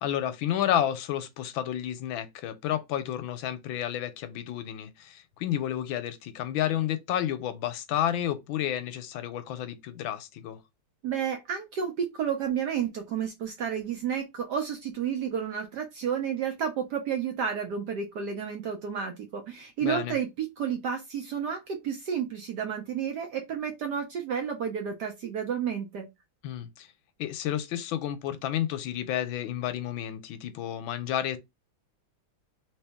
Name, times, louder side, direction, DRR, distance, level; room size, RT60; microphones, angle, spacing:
voice 1, 0.0-10.6 19.8-20.2 26.4-26.9 27.2-31.4, left 11 dB, 75° left, 1.3 m, -31 dB
voice 2, 11.0-26.1, right 7 dB, 70° right, 1.1 m, -31 dB
3.1 x 3.0 x 3.4 m
omnidirectional pair, 2.3 m